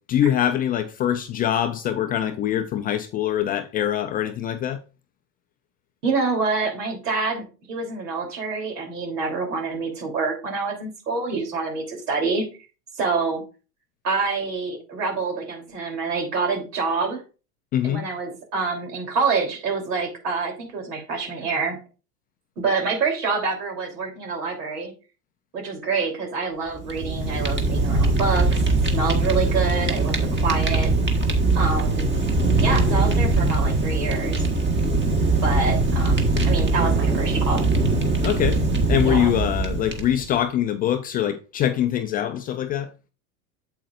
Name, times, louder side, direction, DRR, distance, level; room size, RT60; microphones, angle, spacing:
voice 1, 0.0-4.8 17.7-18.1 38.2-38.6 38.9-42.9, left 11 dB, 20° left, 0.3 m, -23 dB
voice 2, 6.0-12.4 13.0-13.4 14.0-17.2 17.8-21.8 22.6-24.9 25.5-28.6 28.9-30.2 30.4-30.9 31.5-32.1 32.6-34.4 35.2-37.7 39.0-39.4, right 4 dB, 80° right, 3.3 m, -26 dB
Fire, 26.7-40.3, right 3 dB, 25° right, 1.5 m, -21 dB
8.5 x 7.8 x 2.5 m
hypercardioid pair, 100°, 46 cm